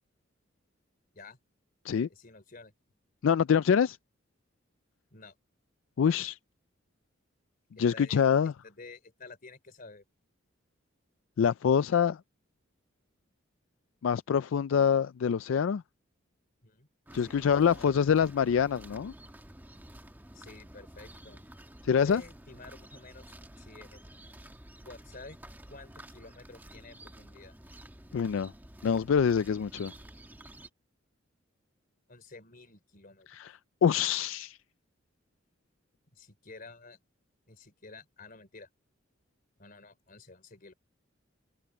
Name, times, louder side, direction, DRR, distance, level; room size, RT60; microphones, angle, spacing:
voice 1, 2.1-2.7 5.1-5.3 7.8-8.2 8.6-10.0 16.6-16.9 17.2-17.9 20.3-21.4 22.0-24.0 24.8-25.4 25.7-27.6 32.1-33.3 36.1-37.0 37.5-38.7 39.6-40.7, left 3 dB, 45° left, 3.4 m, -50 dB
voice 2, 3.2-4.0 6.0-6.4 7.8-8.5 11.4-12.2 14.0-15.8 17.1-19.1 21.8-22.2 28.1-28.5 28.8-29.9 33.3-33.5 33.8-34.6, left 7 dB, 80° left, 0.4 m, -25 dB
sound 1, 17.1-30.7, right 1 dB, 10° right, 1.4 m, -51 dB
head